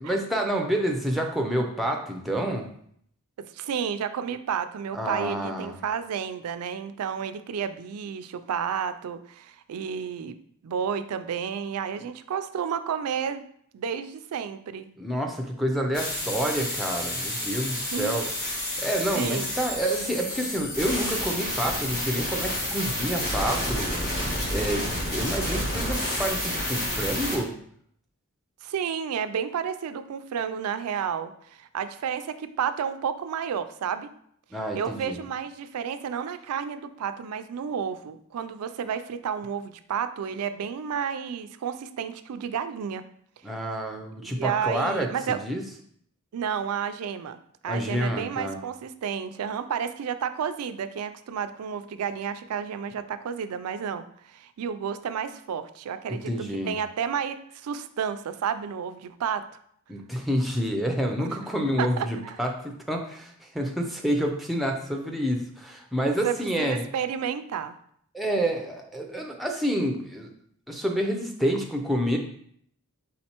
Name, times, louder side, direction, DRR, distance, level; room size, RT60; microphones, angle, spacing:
voice 1, 0.0-2.7 4.9-5.8 15.0-18.3 18.8-24.1 24.5-27.5 34.5-35.2 43.4-45.6 47.7-48.6 56.1-56.8 59.9-66.9 68.1-70.3 70.7-72.2, equal, ahead, 1 dB, 0.4 m, -28 dB
voice 2, 3.5-10.4 10.6-13.4 13.7-14.9 17.7-18.1 19.1-19.5 28.6-34.1 34.7-43.0 44.2-45.4 46.3-47.4 47.6-56.3 56.6-59.5 61.2-61.4 61.8-62.3 66.2-67.8, right 7 dB, 80° right, 11 dB, 0.4 m, -31 dB
sound 1, 15.9-27.4, left 1 dB, 40° left, 1.4 m, -30 dB
4.2 x 3.8 x 2.9 m, 0.66 s
head